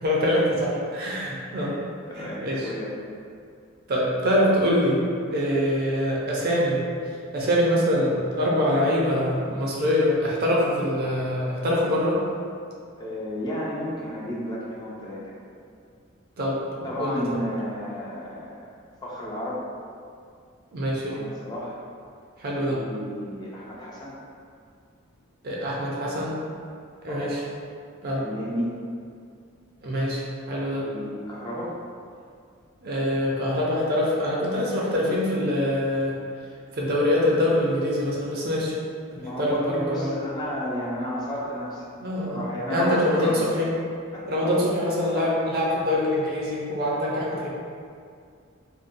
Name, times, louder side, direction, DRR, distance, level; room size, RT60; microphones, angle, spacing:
voice 1, 0.0-1.7 2.1-2.7 3.9-5.0 5.3-6.8 7.3-12.2 16.4-17.4 20.7-21.2 22.4-22.8 25.4-26.4 27.0-27.4 28.0-28.2 29.8-30.8 32.8-36.1 36.7-38.7 39.1-40.1 42.0-42.4 42.7-43.7 44.3-47.5, left 1 dB, 45° right, -4 dB, 0.5 m, -24 dB
voice 2, 2.1-2.9 13.0-15.3 16.8-18.6 19.0-19.6 21.1-21.8 22.6-24.2 27.1-27.3 28.2-28.8 30.8-31.7 39.2-41.8 42.3-43.4 44.1-44.6 45.1-45.3, equal, 20° left, -6 dB, 0.3 m, -32 dB
2.6 x 2.1 x 2.5 m, 2.3 s
head